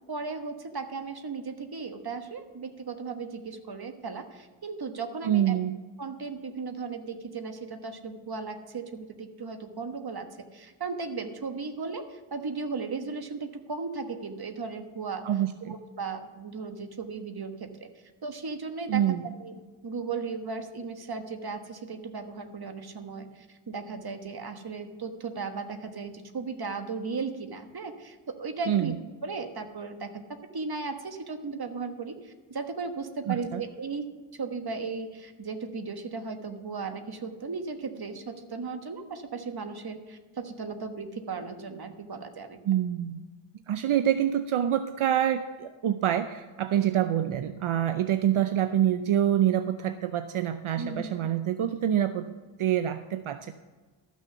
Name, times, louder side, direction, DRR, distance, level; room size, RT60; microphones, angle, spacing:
voice 1, 0.1-5.6 6.0-15.2 15.7-17.9 18.2-19.0 19.4-28.9 29.2-42.6 50.7-51.1, right 4 dB, 50° right, 7 dB, 1.3 m, -36 dB
voice 2, 5.2-5.7 15.2-15.7 18.9-19.2 28.7-28.9 33.3-33.6 42.7-43.2 43.7-52.3 52.6-53.5, right 10 dB, 75° right, 10 dB, 0.6 m, -26 dB
13.0 x 6.3 x 6.8 m, 1.3 s
wide cardioid pair, 75°, 50 cm